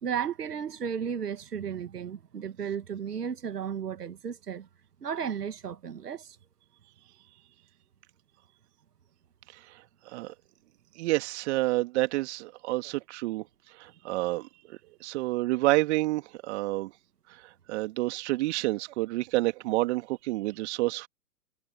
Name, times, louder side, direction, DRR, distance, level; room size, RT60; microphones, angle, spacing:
voice 1, 0.0-4.7 5.0-6.4, right 7 dB, 70° right, 2.5 m, -34 dB
voice 2, 9.5-10.3 11.0-13.5 13.7-16.9 17.3-21.1, right 19 dB, 45° right, 2.5 m, -29 dB
figure-of-eight pair, 115°, 49 cm